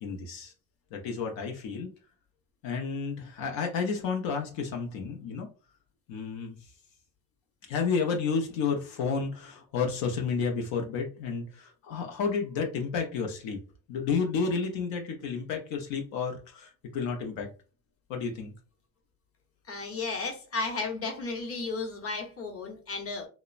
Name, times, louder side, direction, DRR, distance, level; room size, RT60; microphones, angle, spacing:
voice 1, 0.0-0.5 0.9-1.9 2.6-5.5 6.1-6.6 7.7-13.6 13.9-17.5 18.1-18.5, left 5 dB, 80° left, 0.7 m, -31 dB
voice 2, 19.7-23.3, left 3 dB, 30° left, 0.9 m, -34 dB
2.9 x 2.1 x 2.4 m
supercardioid pair, 85°, 45 cm